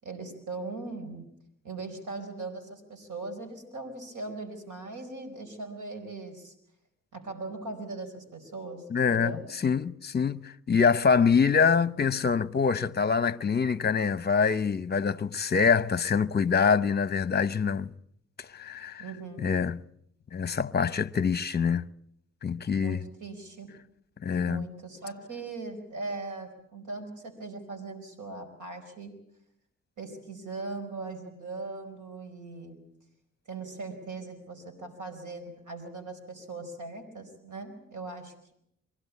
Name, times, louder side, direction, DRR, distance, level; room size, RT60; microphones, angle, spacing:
voice 1, 0.0-1.3 1.6-6.5 7.1-9.4 19.0-19.6 22.8-23.7 24.5-29.2 30.0-32.9 33.5-38.5, right 3 dB, 70° right, 4.6 m, -40 dB
voice 2, 8.9-9.4 9.6-17.9 18.4-19.0 19.4-19.8 20.3-21.9 22.4-23.0 24.2-24.7, left 6 dB, 30° left, 0.8 m, -25 dB
24.0 x 16.5 x 8.4 m
supercardioid pair, 50°, 32 cm